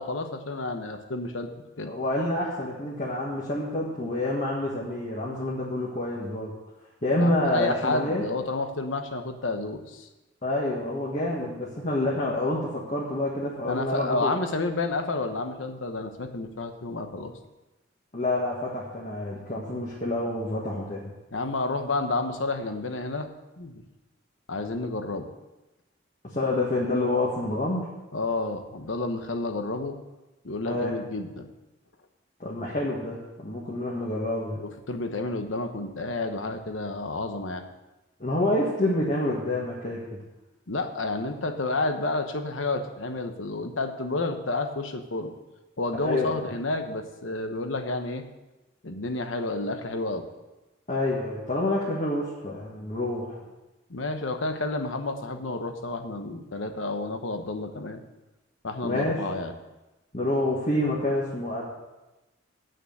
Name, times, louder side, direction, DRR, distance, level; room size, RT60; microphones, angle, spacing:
voice 1, 0.0-1.5 1.8-1.9 7.2-10.1 13.7-17.3 21.3-23.3 23.6-23.8 24.5-25.3 28.1-30.0 30.4-31.5 34.5-37.6 40.7-45.3 45.8-48.2 48.8-50.2 53.9-58.0 58.6-59.5, left 2 dB, 85° left, 7 dB, 1.1 m, -30 dB
voice 2, 1.8-6.5 7.0-8.2 10.4-14.3 18.1-21.1 26.3-27.9 30.7-30.9 32.4-34.6 38.2-40.2 46.0-46.4 50.9-53.4 58.8-59.2 60.1-61.6, left 1 dB, 40° left, -5 dB, 1.7 m, -28 dB
8.9 x 6.5 x 7.8 m, 1.1 s
head